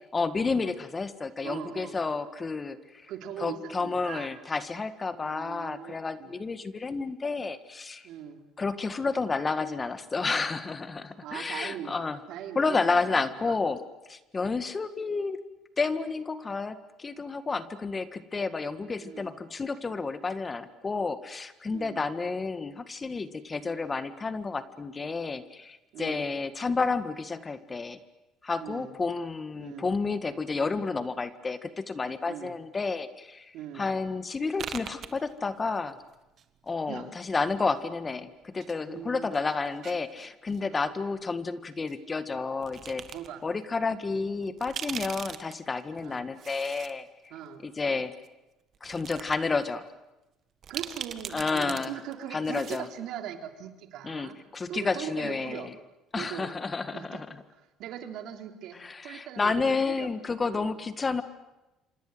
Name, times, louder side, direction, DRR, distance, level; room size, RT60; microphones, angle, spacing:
voice 1, 0.1-3.1 3.4-8.1 8.6-12.2 12.6-13.8 14.1-15.4 15.8-28.0 28.4-36.0 36.7-43.0 43.4-47.3 47.6-48.1 48.8-49.9 51.3-51.9 52.3-52.9 54.0-55.7 56.1-57.4 58.8-61.2, left 4 dB, 25° left, 12 dB, 1.7 m, -31 dB
voice 2, 1.4-2.0 3.1-4.3 5.2-6.4 8.0-8.4 11.1-13.5 19.0-19.4 21.7-22.0 25.9-26.3 28.6-28.9 29.6-29.9 32.2-32.5 33.5-33.9 36.9-37.1 38.9-39.4 40.7-41.0 43.1-43.4 46.0-46.2 47.3-47.6 50.7-54.4 54.7-55.7 56.1-56.5 56.9-57.2 57.8-60.1 60.4-60.7, right 9 dB, 70° right, 5 dB, 3.1 m, -40 dB
sound 1, 34.5-35.8 36.0-37.0 37.8-38.8 39.1-40.6 41.9-42.0 42.6-43.3 43.7-43.8 44.4-46.9 47.3-47.4 48.2-48.3 48.7-49.4 49.7-49.8 50.6-51.9 52.1-52.2 52.4-52.9, right 8 dB, 50° right, 1.8 m, -40 dB
27.0 x 26.5 x 7.9 m, 1.0 s
supercardioid pair, 90°, 0 cm